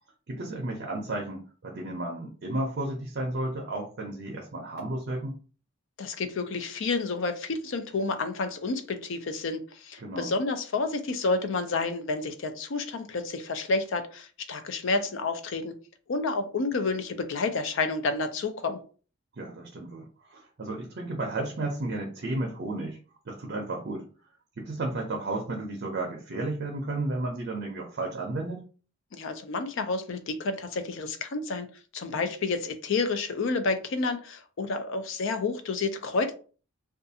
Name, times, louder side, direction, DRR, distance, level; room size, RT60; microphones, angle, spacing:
voice 1, 0.3-5.4 10.0-10.3 19.4-23.0 23.3-24.1 24.6-28.6, right 2 dB, 50° right, 1 dB, 0.5 m, -33 dB
voice 2, 6.0-15.7 16.1-18.8 29.1-31.7 31.9-36.3, left 3 dB, 60° left, 8 dB, 0.4 m, -30 dB
2.4 x 2.3 x 2.7 m, 0.38 s
head